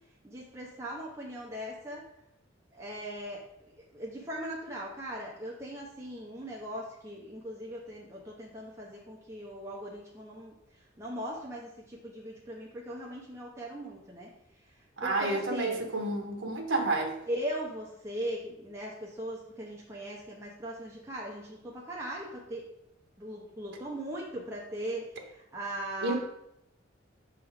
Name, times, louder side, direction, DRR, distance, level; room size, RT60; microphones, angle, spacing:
voice 1, 0.2-2.0 2.7-3.4 3.9-14.3 15.0-15.8 17.3-22.6 23.2-26.2, right 1 dB, 15° right, -4 dB, 0.7 m, -39 dB
voice 2, 15.0-17.2 26.0-26.2, right 2 dB, 75° right, 2 dB, 0.9 m, -30 dB
5.9 x 3.5 x 4.8 m, 0.82 s
head